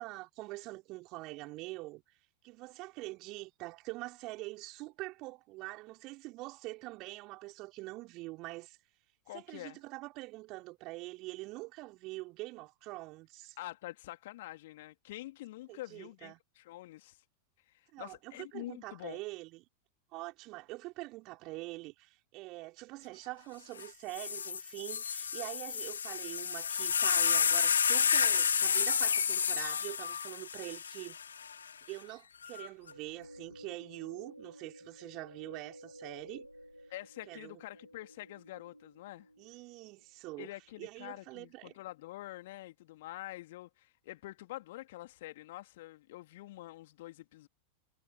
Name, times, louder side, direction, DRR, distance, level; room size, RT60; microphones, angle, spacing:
voice 1, 0.0-2.0 2.4-8.8 9.3-13.6 15.7-16.4 17.9-19.7 20.1-31.2 31.9-36.5 37.3-37.6 39.4-40.5 40.8-41.7, right 21 dB, 40° right, 5.7 m, -44 dB
voice 2, 9.3-9.8 13.6-17.2 17.7-19.2 36.9-39.3 40.4-47.5, left 17 dB, 55° left, 2.8 m, -46 dB
sound 1, 23.8-23.9 24.1-31.5 32.4-32.9, left 7 dB, 70° left, 1.2 m, -30 dB
sound 2, 32.8-40.1, equal, 90° right, 3.3 m, -53 dB
figure-of-eight pair, 90°, 0 cm